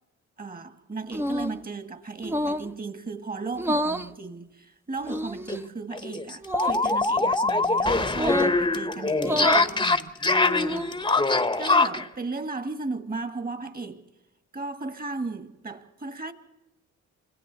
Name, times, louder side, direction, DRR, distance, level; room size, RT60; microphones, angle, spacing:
voice 1, 0.4-11.1 11.6-14.0 14.5-16.3, right 3 dB, 30° right, 1.8 m, -36 dB
sound 1, 1.1-1.6 2.2-2.7 3.5-4.1 5.0-5.6 6.4-6.8 8.1-8.6 9.2-9.7 10.4-11.0, equal, 10° right, 0.6 m, -28 dB
sound 2, 5.1-5.2 5.5-5.6 5.9-12.1, left 3 dB, 15° left, 0.9 m, -23 dB
29.5 x 26.0 x 4.0 m
cardioid pair, 90°, 30 cm